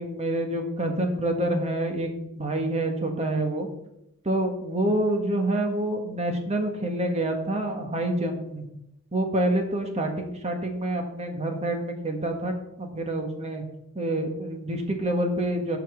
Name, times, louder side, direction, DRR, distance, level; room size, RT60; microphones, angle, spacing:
voice 1, 0.0-3.7 4.2-8.7 9.1-13.6 13.9-15.8, right 1 dB, 30° right, 4 dB, 1.5 m, -27 dB
12.0 x 5.1 x 7.1 m, 0.83 s
head